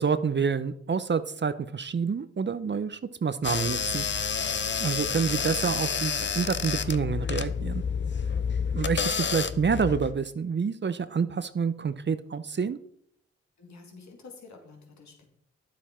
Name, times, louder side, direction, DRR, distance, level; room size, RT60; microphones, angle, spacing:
voice 1, 0.0-4.1 4.8-7.8 8.7-12.8, right 6 dB, 40° right, 13 dB, 0.7 m, -28 dB
sound 1, 3.4-10.1, left 6 dB, 40° left, 0.7 m, -29 dB
voice 2, 13.6-15.3, left 4 dB, 70° left, 2 dB, 2.2 m, -49 dB
10.0 x 7.4 x 4.4 m, 0.69 s
supercardioid pair, 45°, 29 cm